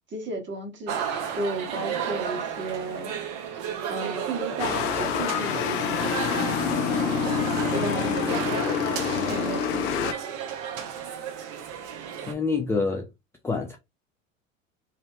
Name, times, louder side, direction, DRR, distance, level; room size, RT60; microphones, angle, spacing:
voice 1, 0.1-1.0 1.3-3.1 3.9-8.6 9.1-10.1, right 2 dB, 30° right, 1.4 m, -34 dB
sound 1, 0.9-12.3, right 8 dB, 50° right, 0.8 m, -33 dB
sound 2, 4.6-10.1, left 7 dB, 50° left, 0.8 m, -26 dB
voice 2, 12.2-13.1 13.4-13.8, left 4 dB, 5° left, 0.4 m, -26 dB
3.1 x 2.7 x 2.3 m
figure-of-eight pair, 75°, 39 cm